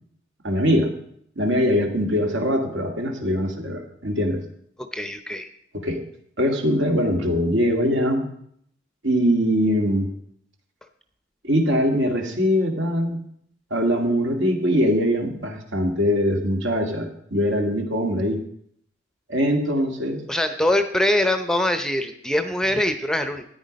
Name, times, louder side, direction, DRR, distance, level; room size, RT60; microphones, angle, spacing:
voice 1, 0.4-0.9 1.4-4.4 5.7-6.0 6.4-8.3 9.0-10.1 11.4-13.2 13.7-18.4 19.3-20.2, equal, 65° right, 3 dB, 2.2 m, -22 dB
voice 2, 4.8-5.5 20.3-23.4, left 1 dB, 5° left, 8 dB, 0.7 m, -23 dB
13.5 x 9.5 x 5.2 m, 0.67 s
head